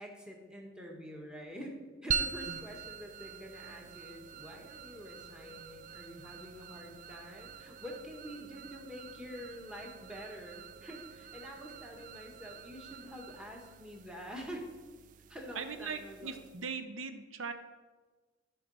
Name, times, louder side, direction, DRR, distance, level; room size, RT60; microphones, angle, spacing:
voice 1, 0.0-14.6 15.3-16.4, equal, 5° right, 0 dB, 1.3 m, -47 dB
sound 1, 2.1-16.8, right 7 dB, 40° right, 0.3 m, -44 dB
voice 2, 15.5-17.5, right 5 dB, 70° right, 8 dB, 0.8 m, -40 dB
13.5 x 4.6 x 4.1 m, 1.3 s
head